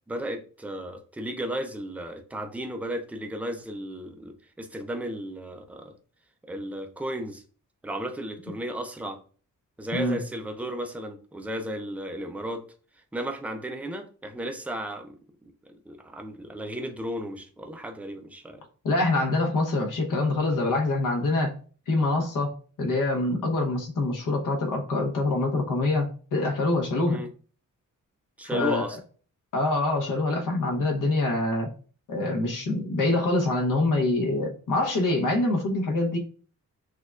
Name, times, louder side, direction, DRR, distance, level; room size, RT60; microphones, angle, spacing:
voice 1, 0.1-5.9 6.5-7.4 7.8-9.2 9.8-12.6 13.1-18.6 27.1-27.3 28.4-29.0, equal, 5° right, 5 dB, 0.3 m, -34 dB
voice 2, 18.8-21.5 21.9-22.5 22.8-27.2 28.5-28.8 29.5-31.7 32.1-36.2, left 2 dB, 80° left, 2 dB, 1.0 m, -25 dB
6.2 x 2.3 x 2.4 m, 0.41 s
wide cardioid pair, 155°, 32 cm